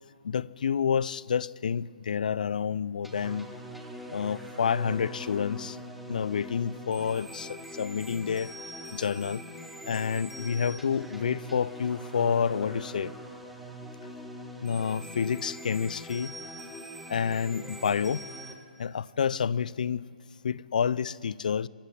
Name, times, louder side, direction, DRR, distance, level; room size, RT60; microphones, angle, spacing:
voice 1, 0.2-3.5 4.1-5.8 6.1-8.6 8.9-9.4 9.9-13.1 14.6-16.3 17.1-18.2 18.8-20.0 20.4-21.7, left 7 dB, 60° left, 21 dB, 0.6 m, -29 dB
sound 1, 3.0-18.5, equal, ahead, 2.1 m, -43 dB
25.0 x 15.0 x 9.9 m, 2.3 s
figure-of-eight pair, 135°, 5 cm